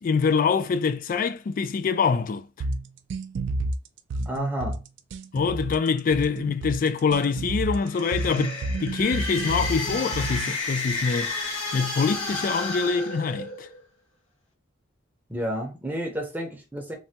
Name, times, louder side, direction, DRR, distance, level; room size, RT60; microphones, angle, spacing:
voice 1, 0.0-2.5 5.3-11.3 11.7-13.7, left 5 dB, 45° left, 0.3 m, -25 dB
sound 1, 2.6-10.6, right 2 dB, 65° right, 0.3 m, -31 dB
voice 2, 4.3-4.8 15.3-17.0, equal, 10° right, 0.6 m, -30 dB
sound 2, 7.7-13.8, left 3 dB, 75° left, 1.5 m, -32 dB
3.2 x 2.2 x 2.7 m
head